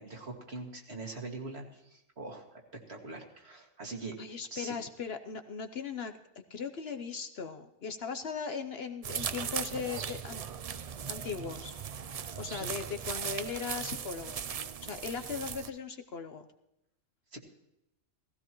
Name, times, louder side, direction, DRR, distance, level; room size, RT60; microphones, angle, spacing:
voice 1, 0.0-2.6 2.9-4.2 4.5-4.8 9.7-9.8 12.6-12.7 17.3-17.4, right 3 dB, 55° right, 1 dB, 2.3 m, -42 dB
voice 2, 4.2-6.2 6.5-10.4 11.1-11.7 12.4-14.5 14.8-16.5, left 6 dB, 55° left, 7 dB, 1.0 m, -38 dB
sound 1, 9.0-15.7, right 7 dB, 75° right, 0.3 m, -38 dB
17.0 x 15.5 x 3.0 m, 0.89 s
omnidirectional pair, 1.3 m